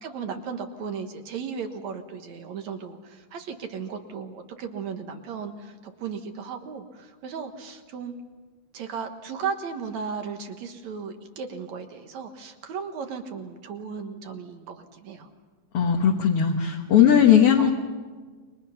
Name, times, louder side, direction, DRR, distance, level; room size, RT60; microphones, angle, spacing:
voice 1, 0.0-8.2 8.7-15.3 17.6-17.7, right 6 dB, 65° right, 6 dB, 2.6 m, -35 dB
voice 2, 15.7-17.7, left 8 dB, 55° left, 1 dB, 2.1 m, -18 dB
29.5 x 23.5 x 5.8 m, 1.4 s
omnidirectional pair, 3.6 m